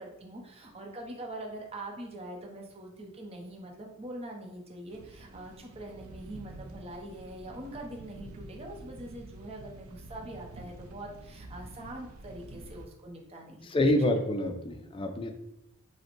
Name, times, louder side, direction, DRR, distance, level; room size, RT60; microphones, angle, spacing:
voice 1, 0.0-13.9, right 1 dB, 25° right, 0 dB, 0.7 m, -43 dB
sound 1, 4.9-12.9, right 2 dB, 70° right, 0.5 m, -48 dB
voice 2, 13.7-15.3, left 1 dB, 25° left, 5 dB, 0.4 m, -27 dB
5.2 x 2.2 x 4.4 m, 0.84 s
head